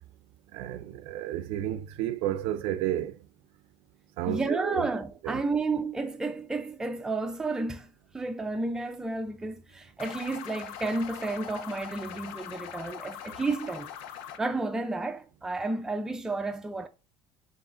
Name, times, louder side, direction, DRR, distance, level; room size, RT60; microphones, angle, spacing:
voice 1, 0.5-3.1 4.2-4.9 5.2-5.4, right 12 dB, 80° right, 0.4 m, -31 dB
voice 2, 4.3-13.9 14.4-16.9, right 3 dB, 5° right, 0.3 m, -32 dB
sound 1, 10.0-14.4, left 9 dB, 85° left, 0.5 m, -42 dB
4.8 x 3.2 x 2.4 m
cardioid pair, 150°, 9 cm